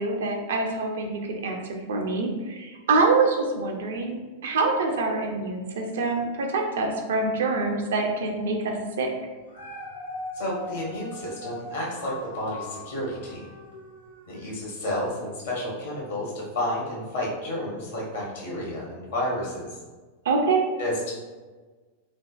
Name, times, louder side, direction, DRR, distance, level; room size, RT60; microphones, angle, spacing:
voice 1, 0.0-4.1 4.4-9.1 20.3-20.6, right 3 dB, 60° right, 2 dB, 0.4 m, -25 dB
Dog, 9.3-14.6 15.2-15.3, left 2 dB, 85° left, 0.7 m, -40 dB
voice 2, 10.3-13.5 14.3-19.8 20.8-21.1, left 1 dB, 60° left, -4 dB, 1.1 m, -31 dB
3.4 x 2.0 x 2.3 m, 1.3 s
figure-of-eight pair, 90°, 0 cm